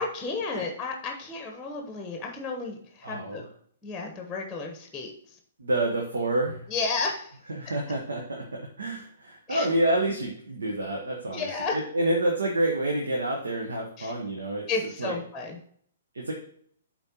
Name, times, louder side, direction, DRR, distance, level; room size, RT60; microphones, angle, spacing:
voice 1, 0.0-3.4 3.8-5.1 6.7-7.4 9.5-9.7 11.3-11.8 14.0-14.1 14.7-15.6, left 4 dB, 10° left, 3 dB, 1.1 m, -32 dB
voice 2, 3.0-3.4 5.6-6.7 7.5-14.6 15.0-15.1 16.1-16.3, right 1 dB, 75° right, 0 dB, 1.2 m, -28 dB
11.5 x 4.4 x 3.0 m, 0.62 s
figure-of-eight pair, 120°, 0 cm